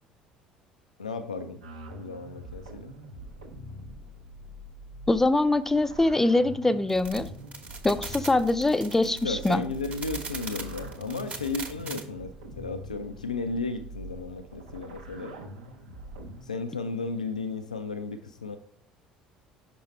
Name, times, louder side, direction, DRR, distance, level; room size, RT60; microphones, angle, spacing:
voice 1, 1.0-1.6 2.0-2.9 9.0-15.4 16.4-18.6, left 3 dB, 80° left, 8 dB, 0.3 m, -34 dB
sound 1, 1.6-16.4, right 1 dB, 75° right, 0.7 m, -44 dB
voice 2, 5.1-7.3 7.8-9.6, left 2 dB, 10° left, 13 dB, 0.4 m, -23 dB
sound 2, 6.9-12.0, right 4 dB, 30° right, 1.0 m, -39 dB
5.8 x 5.3 x 3.1 m, 0.67 s
figure-of-eight pair, 60°, 4 cm